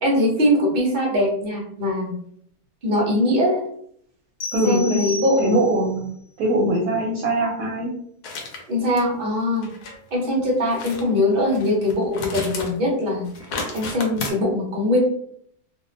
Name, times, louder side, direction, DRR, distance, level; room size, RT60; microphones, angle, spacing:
voice 1, 0.0-2.1 2.8-3.6 4.6-5.5 8.7-9.7 10.1-13.3 13.7-15.0, left 1 dB, 45° right, -2 dB, 0.7 m, -21 dB
sound 1, 4.4-5.9, left 1 dB, 50° left, 0.8 m, -33 dB
voice 2, 4.5-5.0 5.4-6.1 6.4-7.9, right 1 dB, 75° right, -2 dB, 1.0 m, -21 dB
sound 2, 8.2-8.6 9.0-9.1 9.6-10.0 10.7-11.0 11.4-12.8 13.1-14.3, left 3 dB, 80° left, 1.1 m, -32 dB
2.7 x 2.0 x 2.5 m, 0.65 s
omnidirectional pair, 1.7 m